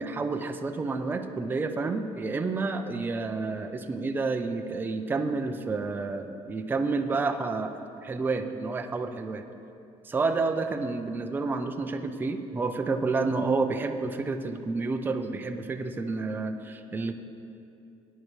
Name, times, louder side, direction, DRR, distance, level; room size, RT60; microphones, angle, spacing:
voice 1, 0.0-7.7 8.0-9.5 10.0-17.2, right 3 dB, 20° right, 6 dB, 0.5 m, -29 dB
17.0 x 10.0 x 3.2 m, 2.6 s
cardioid pair, 165°, 11 cm